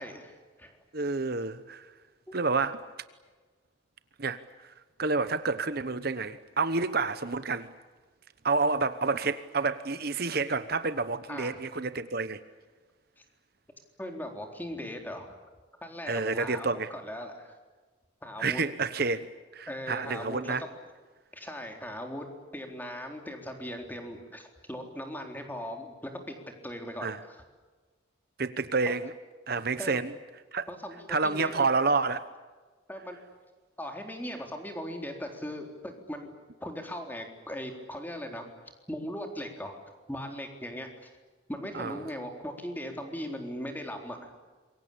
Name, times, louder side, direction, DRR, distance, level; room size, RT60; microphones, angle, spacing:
voice 1, 0.0-0.8 11.3-11.6 14.0-15.4 15.8-17.5 18.2-18.6 19.7-20.7 21.3-22.3 22.5-25.9 26.3-26.4 26.6-27.4 29.8-30.0 30.7-31.5 32.9-33.2 33.8-36.3 36.6-38.5 38.9-39.8 40.1-41.1 41.5-44.3, equal, 10° left, 3.9 m, -39 dB
voice 2, 0.9-1.9 2.3-2.8 4.2-4.4 5.0-7.7 8.4-12.4 16.1-16.9 18.4-20.6 27.0-27.2 28.4-29.1 29.5-30.1 30.5-30.7 31.1-32.3 41.7-42.0, right 4 dB, 50° right, 1.0 m, -29 dB
27.0 x 23.5 x 8.7 m
head